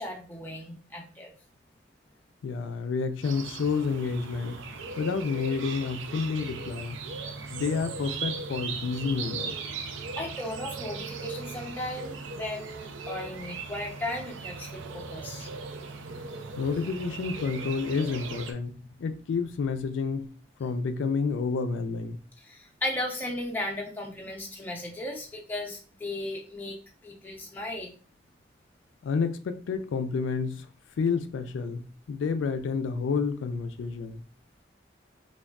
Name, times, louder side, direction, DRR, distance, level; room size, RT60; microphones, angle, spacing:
voice 1, 0.0-1.3 10.2-15.5 22.4-26.8 27.0-27.9, left 1 dB, 10° left, 0.5 m, -36 dB
voice 2, 2.4-4.6 5.0-7.0 7.5-9.5 16.6-20.3 20.6-22.2 29.0-30.7 31.0-34.2, left 5 dB, 90° left, 0.3 m, -29 dB
sound 1, 3.2-18.5, right 4 dB, 85° right, 0.4 m, -38 dB
3.5 x 2.3 x 2.2 m
head